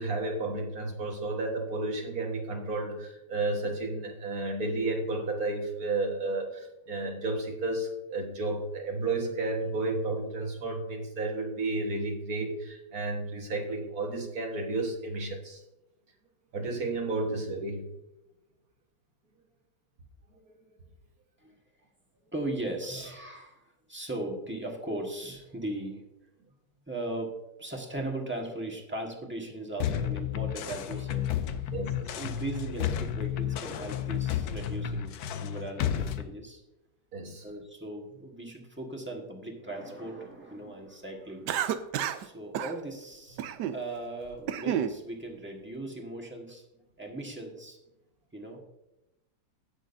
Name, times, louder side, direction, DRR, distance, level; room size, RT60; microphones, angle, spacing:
voice 1, 0.0-15.6 16.5-17.9 20.3-20.4 31.6-32.2 37.1-37.5, right 2 dB, 55° right, 1 dB, 1.9 m, -32 dB
voice 2, 22.3-26.0 26.9-31.3 32.1-36.6 37.4-41.5 42.2-43.4 43.7-46.6 47.0-47.8 48.3-48.6, right 1 dB, 5° right, 0 dB, 1.3 m, -38 dB
sound 1, 29.8-36.2, left 10 dB, 70° left, 1.0 m, -32 dB
Cough, 41.5-42.3 42.5-42.8 43.4-43.8 44.3-45.0, right 10 dB, 75° right, 1.1 m, -30 dB
17.0 x 6.3 x 2.7 m, 0.93 s
omnidirectional pair, 2.0 m